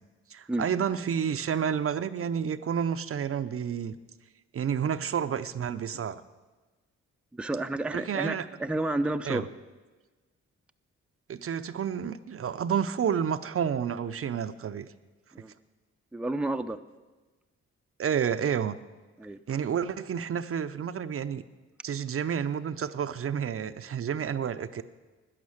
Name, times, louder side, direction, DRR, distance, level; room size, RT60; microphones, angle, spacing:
voice 1, 0.3-4.0 4.5-6.2 7.9-8.5 9.2-9.4 11.3-14.9 18.0-18.8 19.5-21.4 21.8-24.8, right 8 dB, 50° right, 0.6 m, -30 dB
voice 2, 7.3-9.5 15.3-15.5 16.1-16.8 19.2-19.4, right 2 dB, 5° right, 0.5 m, -30 dB
11.5 x 10.0 x 7.2 m
cardioid pair, 70°, 29 cm